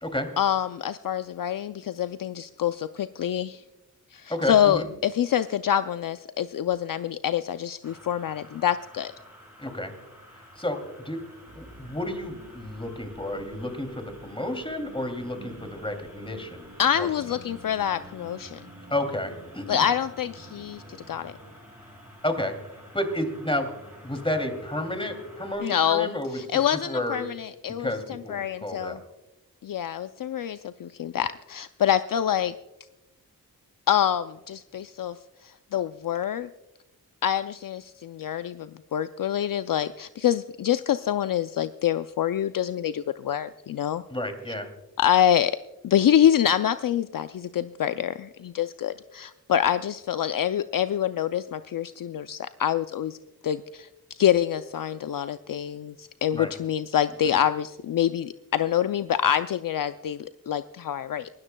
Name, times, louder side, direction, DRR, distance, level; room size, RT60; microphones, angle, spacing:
voice 1, 0.4-3.6 4.1-9.1 16.8-18.6 19.7-21.3 25.6-27.9 28.3-29.0 29.6-32.5 33.9-35.2 35.4-36.5 37.2-44.0 45.0-45.6 45.8-53.2 53.4-53.9 54.2-61.3, left 10 dB, 60° left, 12 dB, 0.5 m, -26 dB
voice 2, 4.3-4.9 9.6-9.9 10.3-11.2 11.5-16.7 16.9-17.1 18.9-19.9 22.2-23.7 24.0-27.2 27.7-29.0 44.1-44.7 56.3-56.5 57.2-57.4, left 1 dB, 15° left, 6 dB, 2.7 m, -31 dB
sound 1, 7.8-25.6, equal, 5° right, 5.5 m, -50 dB
sound 2, 11.5-21.5, right 1 dB, 50° right, 5.8 m, -49 dB
28.0 x 13.0 x 2.2 m, 1.0 s
wide cardioid pair, 65°, 37 cm